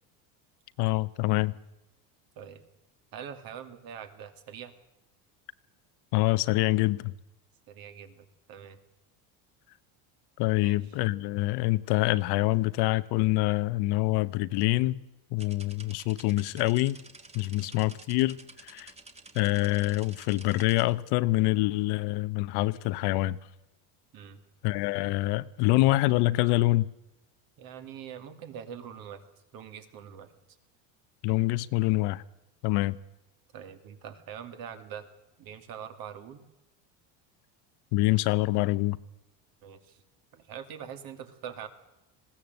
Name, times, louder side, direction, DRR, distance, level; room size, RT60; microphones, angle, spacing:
voice 1, 0.8-1.5 6.1-7.1 10.4-15.0 15.3-17.0 17.3-18.9 19.3-23.4 24.6-26.9 31.2-32.2 32.6-33.0 37.9-39.0, left 19 dB, 60° left, 0.9 m, -26 dB
voice 2, 3.1-4.7 7.7-8.8 10.6-10.8 17.6-17.8 24.1-24.4 27.6-29.2 29.5-30.3 33.5-35.1 35.4-36.4 39.6-40.0 40.3-41.7, right 8 dB, 50° right, 2.6 m, -43 dB
sound 1, 15.4-20.9, right 3 dB, 15° right, 1.7 m, -51 dB
20.5 x 16.5 x 7.9 m
cardioid pair, 140°, 44 cm